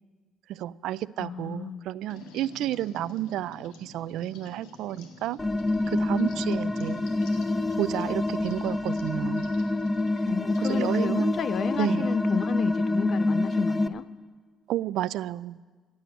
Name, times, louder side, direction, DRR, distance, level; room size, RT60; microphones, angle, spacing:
voice 1, 0.5-5.4 5.9-7.0 7.8-9.5 10.7-11.3 11.8-12.1 14.7-15.6, right 13 dB, 75° right, 19 dB, 0.3 m, -31 dB
voice 2, 1.2-1.8 10.3-14.0, left 7 dB, 60° left, 15 dB, 0.5 m, -32 dB
sound 1, 2.1-11.9, left 3 dB, 85° left, 1.9 m, -49 dB
sound 2, 5.4-13.9, left 2 dB, 15° left, 1.0 m, -27 dB
16.5 x 8.6 x 8.8 m, 1.4 s
supercardioid pair, 60°, 0 cm